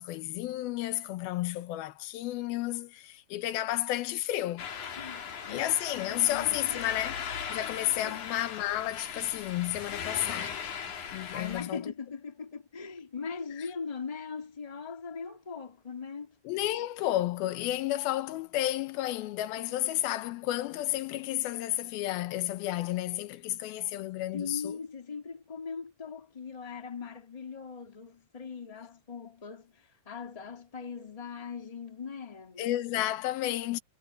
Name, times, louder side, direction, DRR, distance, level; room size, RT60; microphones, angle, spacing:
voice 1, 0.0-4.7 5.5-7.2 7.5-10.5 11.1-11.8 16.5-24.8 32.6-33.8, left 14 dB, 85° left, 2.8 m, -31 dB
sound 1, 4.6-11.6, left 7 dB, 55° left, 3.7 m, -38 dB
voice 2, 5.0-6.9 8.0-8.2 11.3-16.3 19.6-20.0 24.3-32.7, left 5 dB, 15° left, 1.7 m, -41 dB
omnidirectional pair, 4.2 m